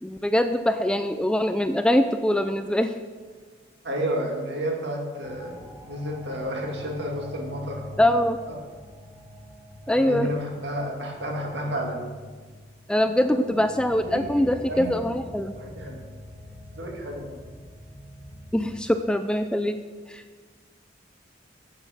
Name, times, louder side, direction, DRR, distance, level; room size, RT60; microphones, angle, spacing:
voice 1, 0.0-2.9 8.0-8.4 9.9-10.3 12.9-15.5 18.5-19.8 20.1-20.2, left 1 dB, 5° left, 9 dB, 0.3 m, -23 dB
voice 2, 3.8-7.9 8.5-8.6 9.9-12.1 13.2-13.6 14.4-15.1 15.6-16.0 16.7-17.4, equal, 70° right, 0 dB, 2.2 m, -31 dB
sound 1, 5.2-18.8, left 1 dB, 15° right, 2.2 m, -45 dB
8.8 x 8.5 x 6.3 m, 1.5 s
head